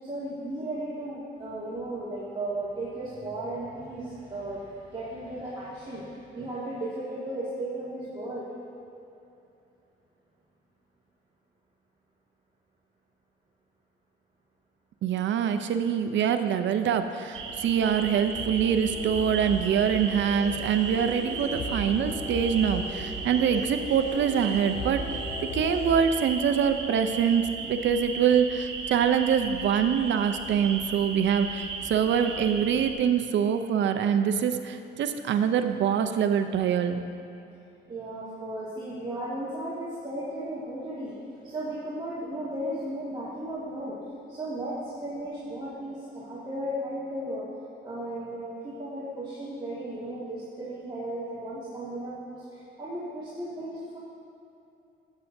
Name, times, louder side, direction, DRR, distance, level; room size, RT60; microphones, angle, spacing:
voice 1, 0.0-8.5 37.9-44.0 44.3-47.5 47.8-54.0, right 1 dB, 25° right, -9 dB, 1.9 m, -35 dB
voice 2, 15.0-25.1 25.4-37.0, right 8 dB, 70° right, 8 dB, 0.6 m, -25 dB
sound 1, 17.3-32.9, right 4 dB, 90° right, 1.0 m, -36 dB
sound 2, 17.5-26.0, left 1 dB, 60° left, 1.9 m, -38 dB
12.0 x 8.2 x 2.7 m, 2.8 s
cardioid pair, 90°, 20 cm